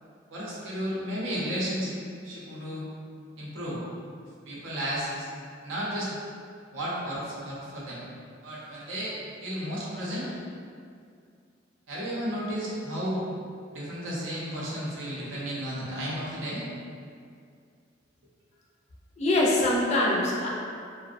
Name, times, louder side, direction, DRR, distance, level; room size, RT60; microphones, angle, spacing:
voice 1, 0.3-2.8 3.4-3.8 4.4-5.3 5.6-6.1 6.7-8.0 8.4-10.3 11.9-13.2 13.7-16.7, equal, 85° right, -6 dB, 0.7 m, -33 dB
voice 2, 19.2-20.5, left 1 dB, 35° left, -2 dB, 0.4 m, -23 dB
2.5 x 2.1 x 2.5 m, 2.3 s
head